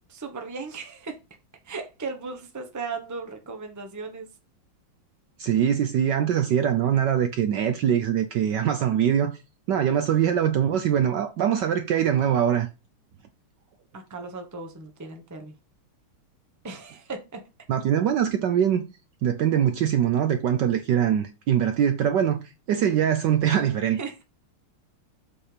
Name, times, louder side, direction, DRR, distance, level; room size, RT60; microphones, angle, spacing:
voice 1, 0.1-1.2 1.6-4.3 13.9-15.5 16.6-17.4 24.0-24.2, right 4 dB, 10° right, 0.8 m, -36 dB
voice 2, 5.4-9.3 9.7-12.7 17.7-18.8 19.2-22.4 22.7-24.0, right 9 dB, 65° right, 1.1 m, -23 dB
7.5 x 4.3 x 5.1 m
omnidirectional pair, 2.4 m